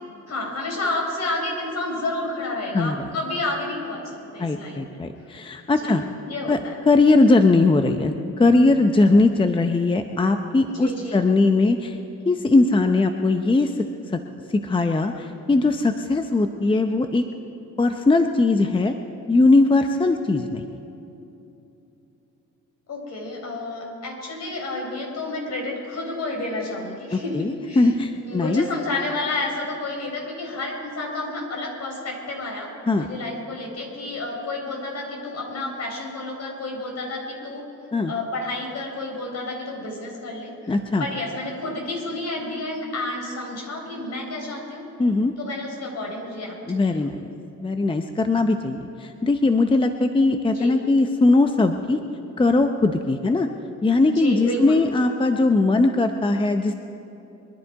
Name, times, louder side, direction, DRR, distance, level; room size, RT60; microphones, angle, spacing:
voice 1, 0.3-5.0 5.8-5.9 6.2-6.8 10.7-11.1 22.9-27.9 28.2-32.7 33.0-37.6 38.1-44.8 45.4-46.6 46.8-47.1 50.5-50.7 54.1-54.8, left 2 dB, 55° left, 0 dB, 4.5 m, -30 dB
voice 2, 2.7-3.1 4.4-6.0 6.5-6.6 6.9-12.0 12.3-13.8 14.1-14.2 14.5-17.2 17.8-18.9 19.3-20.6 27.1-28.6 32.9-33.1 37.9-38.1 40.7-41.0 45.0-45.3 46.7-47.3 47.6-52.0 52.4-53.5 53.8-56.7, left 3 dB, 15° left, 7 dB, 0.7 m, -20 dB
23.5 x 11.0 x 4.7 m, 3.0 s
cardioid pair, 90°, 30 cm